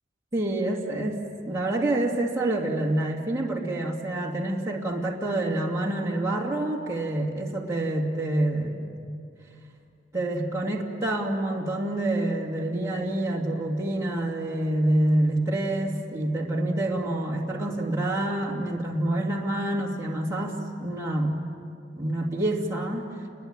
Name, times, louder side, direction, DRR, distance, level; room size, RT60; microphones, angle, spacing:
voice 1, 0.3-8.9 10.1-21.4 22.0-23.1, right 1 dB, 15° right, -3 dB, 2.6 m, -27 dB
29.5 x 22.5 x 8.9 m, 2.4 s
head